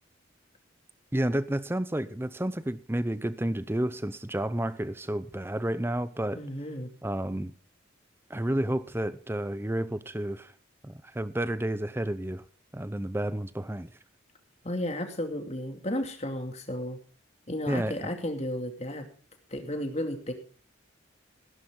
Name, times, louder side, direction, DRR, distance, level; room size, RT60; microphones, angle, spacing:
voice 1, 1.1-6.4 7.0-7.5 8.3-10.5 10.8-12.4 12.7-13.9 17.7-17.9, right 1 dB, 10° right, 0.6 m, -30 dB
voice 2, 6.4-6.9 14.6-17.0 17.5-19.1 19.5-20.3, left 1 dB, 35° left, 2.5 m, -33 dB
16.0 x 12.0 x 3.8 m
head